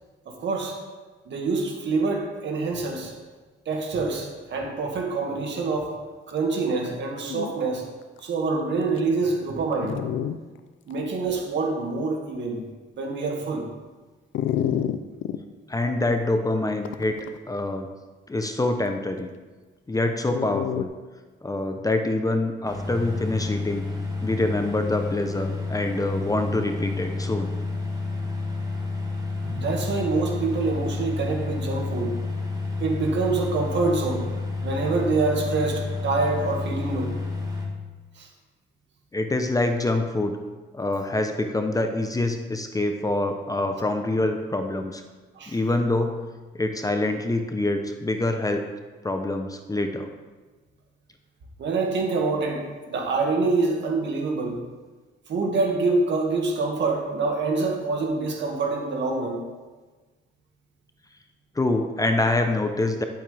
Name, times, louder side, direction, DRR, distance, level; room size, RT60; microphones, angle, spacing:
voice 1, 0.3-0.8 1.3-3.1 3.7-5.9 6.3-7.8 8.2-10.0 10.9-12.6 13.0-13.7 29.4-32.1 32.8-34.3 34.6-37.1 38.2-38.3 45.4-45.6 51.6-54.6 55.3-59.4, right 3 dB, 65° right, 1 dB, 2.1 m, -26 dB
Dog, 6.9-7.0 7.2-7.5 8.2-8.3 9.0-9.1 9.8-10.4 10.9-11.0 14.3-15.4 16.8-17.4 20.3-20.8, left 10 dB, 75° left, 0.6 m, -28 dB
voice 2, 15.7-17.2 17.5-17.9 18.3-19.3 19.9-20.9 21.4-23.8 24.2-27.5 39.1-40.4 40.7-45.0 45.5-46.2 46.5-48.7 49.0-50.1 61.5-63.0, left 2 dB, 15° left, 5 dB, 0.8 m, -25 dB
sound 1, 22.6-37.7, left 3 dB, 20° right, 2.0 m, -30 dB
11.5 x 7.7 x 3.5 m, 1.3 s
cardioid pair, 90°, 20 cm